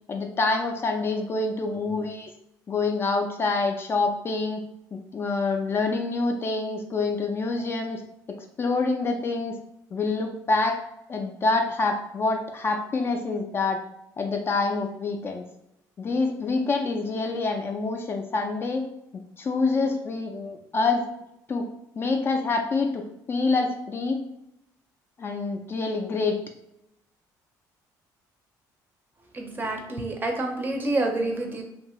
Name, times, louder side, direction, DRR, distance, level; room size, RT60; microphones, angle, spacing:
voice 1, 0.1-2.3 2.7-4.6 4.9-8.0 8.3-9.6 9.9-10.8 11.1-13.8 14.2-15.4 16.0-18.8 19.4-21.0 21.5-21.7 22.0-24.2 25.2-26.4, left 3 dB, 30° left, 3 dB, 0.3 m, -26 dB
voice 2, 29.3-31.6, right 2 dB, 25° right, 3 dB, 0.5 m, -28 dB
2.6 x 2.3 x 2.9 m, 0.83 s
cardioid pair, 115°, 8 cm